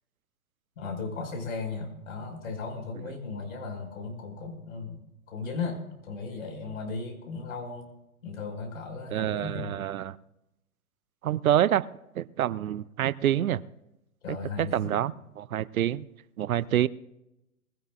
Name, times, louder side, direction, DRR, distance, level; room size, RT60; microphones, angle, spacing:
voice 1, 0.8-5.0 5.3-7.9 8.2-9.8 14.2-14.9, left 4 dB, 60° left, 5.6 m, -36 dB
voice 2, 9.1-10.2 11.2-11.9 12.2-13.6 14.3-16.0 16.4-16.9, right 11 dB, 70° right, 0.6 m, -27 dB
20.0 x 17.0 x 2.5 m
figure-of-eight pair, 120°, 45 cm